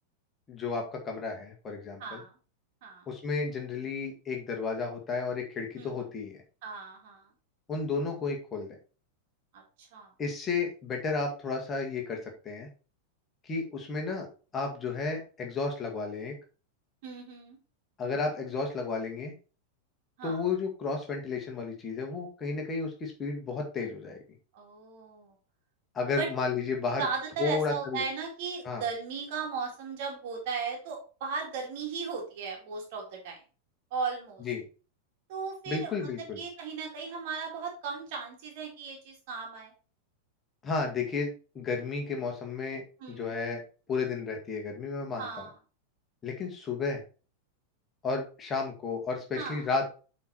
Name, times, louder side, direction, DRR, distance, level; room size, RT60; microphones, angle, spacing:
voice 1, 0.5-2.2 3.1-6.3 7.7-8.8 10.2-12.7 13.4-14.3 14.5-16.3 18.0-19.3 20.2-24.2 25.9-27.1 27.4-28.0 28.6-28.8 34.4-34.7 35.7-36.4 40.6-42.8 43.1-43.6 43.9-45.5 46.2-47.0 48.0-50.0, left 4 dB, 20° left, 1 dB, 2.0 m, -32 dB
voice 2, 2.0-2.3 2.8-3.0 5.8-6.1 6.6-7.3 9.5-9.6 9.9-10.1 17.0-17.6 20.2-20.5 24.5-25.4 26.2-26.3 27.0-33.4 33.9-34.4 35.3-39.7 43.0-43.3 45.2-45.5 46.8-46.9 49.4-49.6, right 5 dB, 50° right, 1 dB, 2.7 m, -36 dB
8.3 x 4.5 x 4.3 m, 0.35 s
figure-of-eight pair, 90°, 0 cm